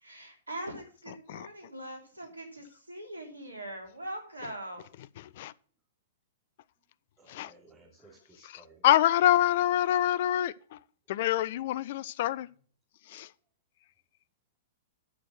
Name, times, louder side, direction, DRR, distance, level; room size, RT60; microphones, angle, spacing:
voice 1, 0.0-4.9, right 1 dB, 90° right, 3.1 m, -42 dB
voice 2, 5.2-5.5 7.3-7.5 8.8-10.8 11.1-12.5 13.1-13.3, left 13 dB, 50° left, 0.5 m, -26 dB
voice 3, 7.2-8.9 12.5-12.6 13.0-13.1, right 2 dB, 15° right, 3.1 m, -58 dB
10.0 x 6.4 x 6.1 m
figure-of-eight pair, 110°, 0 cm